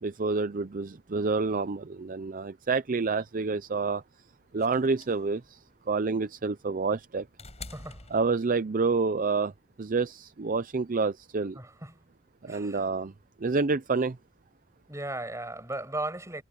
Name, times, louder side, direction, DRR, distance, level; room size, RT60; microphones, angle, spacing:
voice 1, 0.0-4.0 4.5-5.6 5.9-7.3 8.1-9.5 9.8-11.6 12.4-13.1 13.4-14.2, right 4 dB, 40° right, 0.5 m, -28 dB
sound 1, 4.6-8.9 10.1-10.2, left 3 dB, 30° left, 6.4 m, -48 dB
voice 2, 7.7-8.1 11.5-12.0 12.5-12.8 14.9-16.4, right 2 dB, 15° right, 7.5 m, -36 dB
head